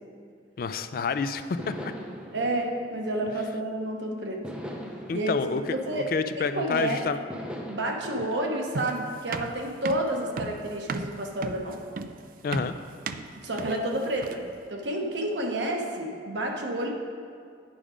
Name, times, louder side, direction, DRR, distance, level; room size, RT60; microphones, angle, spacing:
voice 1, 0.6-1.9 5.1-7.2 12.4-12.8, left 5 dB, 55° left, 11 dB, 0.3 m, -29 dB
sound 1, 1.6-3.8 4.4-6.7 7.3-7.8, equal, 5° right, 0.6 m, -41 dB
voice 2, 2.3-4.4 5.1-5.4 5.7-6.1 6.6-7.1 7.7-11.8 13.4-14.4 14.7-16.9, right 1 dB, 85° right, 1 dB, 1.0 m, -30 dB
sound 2, 8.7-14.6, right 4 dB, 50° right, 0.3 m, -35 dB
9.2 x 4.9 x 5.0 m, 2.2 s
head